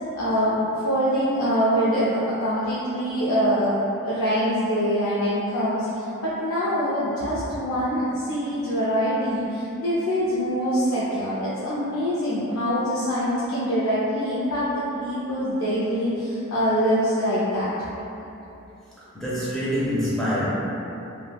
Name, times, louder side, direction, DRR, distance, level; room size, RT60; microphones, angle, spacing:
voice 1, 0.2-17.7, equal, 85° left, -9 dB, 0.4 m, -24 dB
voice 2, 19.1-20.5, equal, ahead, -9 dB, 0.4 m, -25 dB
3.2 x 2.1 x 2.2 m, 2.9 s
head